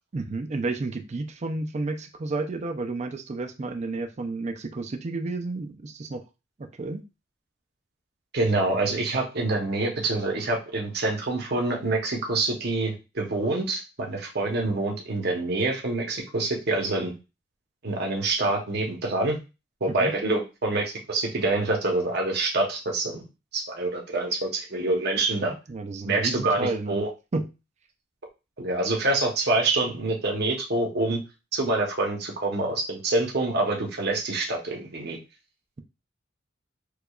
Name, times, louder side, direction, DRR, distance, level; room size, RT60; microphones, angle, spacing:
voice 1, 0.1-6.2 6.6-7.0 19.9-20.1 25.7-27.0 27.3-27.5, right 3 dB, 35° right, 7 dB, 0.4 m, -31 dB
voice 2, 8.3-17.1 17.8-19.4 19.8-23.3 23.5-25.5 26.0-27.1 28.6-31.2 31.5-35.2, right 2 dB, 55° right, 1 dB, 0.9 m, -26 dB
4.7 x 2.3 x 2.3 m, 0.28 s
head